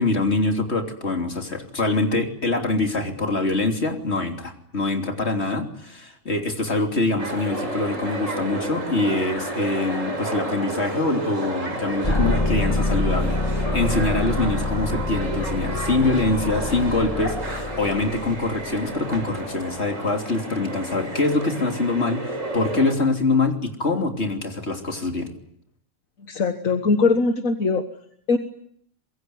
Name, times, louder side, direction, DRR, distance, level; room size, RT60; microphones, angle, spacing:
voice 1, 0.0-25.3, left 2 dB, 50° left, 4 dB, 3.5 m, -24 dB
sound 1, 7.2-22.9, right 2 dB, 65° right, 5.5 m, -31 dB
sound 2, 12.0-19.0, left 2 dB, 20° left, 2.6 m, -26 dB
voice 2, 26.2-27.8 28.3-28.4, left 4 dB, 70° left, 7 dB, 1.8 m, -21 dB
26.0 x 22.5 x 9.5 m, 0.70 s
omnidirectional pair, 1.5 m